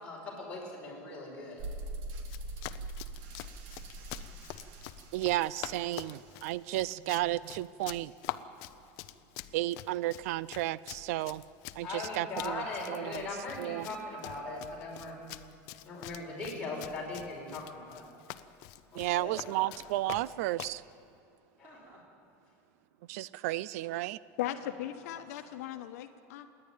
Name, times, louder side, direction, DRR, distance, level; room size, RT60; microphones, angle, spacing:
voice 1, 0.0-1.7 11.8-15.2 15.8-18.0 18.9-19.4 21.6-21.8, left 2 dB, 15° left, -4 dB, 5.1 m, -39 dB
sound 1, 1.6-7.7, right 2 dB, 50° right, 1.8 m, -44 dB
Run, 2.2-20.8, left 15 dB, 50° left, 0.7 m, -46 dB
voice 2, 5.1-8.1 9.5-11.4 11.8-13.3 13.6-13.9 18.9-20.8 23.1-24.2, right 16 dB, 70° right, 20 dB, 0.4 m, -33 dB
Chuckle chortle, 19.4-20.0 21.6-22.2 24.5-24.9, right 1 dB, 20° right, 3.9 m, -55 dB
voice 3, 24.4-26.5, left 12 dB, 80° left, 7 dB, 1.1 m, -37 dB
27.5 x 10.5 x 9.1 m, 2.7 s
cardioid pair, 175°, 8 cm